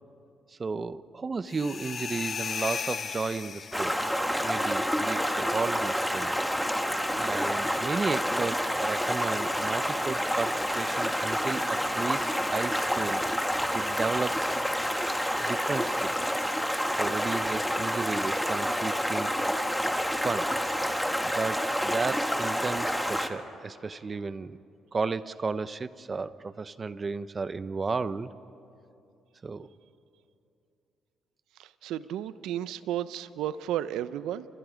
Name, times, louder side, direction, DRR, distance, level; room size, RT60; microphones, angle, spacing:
voice 1, 0.6-3.9 4.4-6.3 7.2-13.2 13.5-14.5 15.4-16.4 17.0-19.6 20.2-20.6 21.2-24.6 24.9-28.3 29.4-29.7, right 4 dB, 35° right, 15 dB, 0.7 m, -33 dB
sound 1, 1.5-4.2, left 6 dB, 50° left, 0.8 m, -35 dB
Stream, 3.7-23.3, equal, ahead, 1.4 m, -28 dB
voice 2, 31.6-34.5, right 11 dB, 90° right, 14 dB, 0.7 m, -33 dB
28.5 x 26.5 x 5.2 m, 2.7 s
cardioid pair, 90°, 0 cm